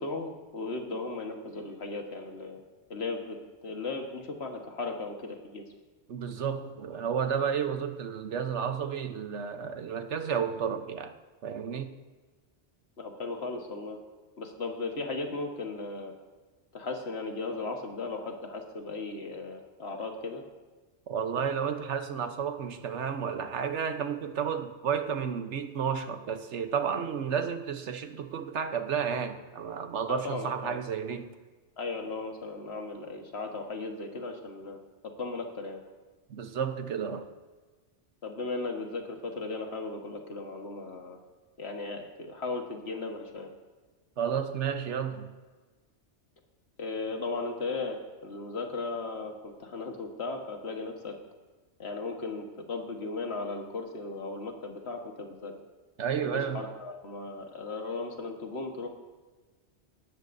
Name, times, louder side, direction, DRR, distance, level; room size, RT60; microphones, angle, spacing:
voice 1, 0.0-2.6 2.9-3.4 3.6-5.6 13.0-14.0 14.4-16.1 16.7-20.4 30.1-30.8 31.8-34.8 35.0-35.8 38.2-41.2 41.6-43.5 46.8-48.0 48.2-51.1 51.8-55.5 56.3-58.9, left 3 dB, 65° left, 3 dB, 1.6 m, -36 dB
voice 2, 6.1-11.1 11.4-11.9 21.1-31.3 36.3-37.3 44.2-45.3 56.0-56.7, right 7 dB, 75° right, 8 dB, 1.2 m, -32 dB
18.0 x 13.0 x 2.6 m, 1.3 s
omnidirectional pair, 1.2 m